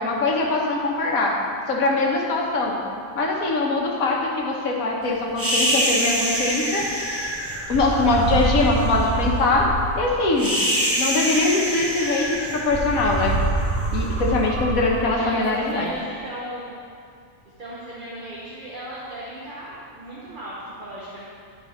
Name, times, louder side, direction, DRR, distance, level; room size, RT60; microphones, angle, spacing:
voice 1, 0.0-1.3 1.7-2.8 3.1-6.8 7.7-10.6 11.0-13.4 13.9-15.9, left 2 dB, 75° left, -1 dB, 1.5 m, -22 dB
sound 1, 5.4-15.7, right 1 dB, 15° right, 0.6 m, -25 dB
voice 2, 15.2-16.8 17.6-21.3, right 1 dB, 40° right, -6 dB, 1.1 m, -36 dB
10.5 x 5.3 x 4.3 m, 2.4 s
omnidirectional pair, 1.5 m